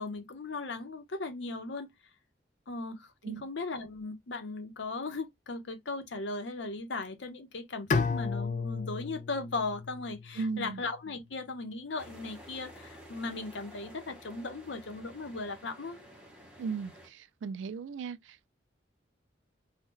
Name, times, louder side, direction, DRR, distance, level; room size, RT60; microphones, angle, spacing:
voice 1, 0.0-1.9 2.7-16.0, left 3 dB, 75° left, 0.7 m, -37 dB
Bowed string instrument, 7.9-10.9, left 4 dB, 40° left, 0.3 m, -33 dB
voice 2, 10.3-10.8 16.6-18.5, right 4 dB, 80° right, 0.3 m, -37 dB
sound 1, 12.0-17.1, equal, 5° right, 0.9 m, -52 dB
2.8 x 2.2 x 3.5 m
head